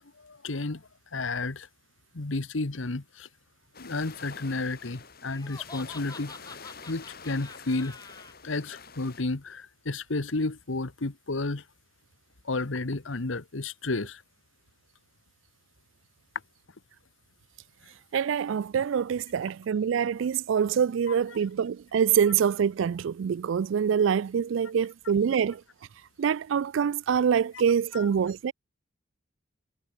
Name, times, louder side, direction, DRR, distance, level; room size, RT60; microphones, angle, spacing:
voice 1, 0.2-1.7 2.1-3.3 3.7-6.3 6.9-8.0 8.4-11.6 12.4-14.2 21.1-21.2 27.9-28.1, left 3 dB, 75° left, 1.2 m, -32 dB
sound 1, 3.7-9.2, left 5 dB, 50° left, 4.3 m, -47 dB
Laughter, 5.3-8.3, left 4 dB, 20° left, 7.0 m, -47 dB
voice 2, 18.1-25.6 26.2-28.5, right 7 dB, 70° right, 0.3 m, -25 dB
head